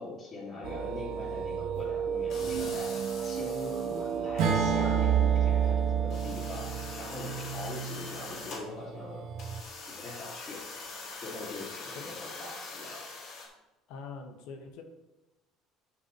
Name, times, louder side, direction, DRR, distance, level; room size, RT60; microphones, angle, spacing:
voice 1, 0.0-2.9 3.2-6.7 7.0-9.2 10.0-10.6 11.2-13.0, left 3 dB, 25° left, -8 dB, 3.2 m, -42 dB
sound 1, 0.6-9.6, right 9 dB, 45° right, 0.5 m, -31 dB
sound 2, 2.3-4.5 5.3-5.4 5.7-5.8 6.1-8.6 9.4-13.5, left 3 dB, 50° left, 2.8 m, -43 dB
Acoustic guitar / Strum, 4.4-8.6, right 5 dB, 65° right, 1.5 m, -32 dB
voice 2, 12.0-12.3 13.9-14.8, left 4 dB, 65° left, 4 dB, 1.4 m, -44 dB
12.0 x 5.9 x 3.1 m, 1.0 s
cardioid pair, 160°, 0 cm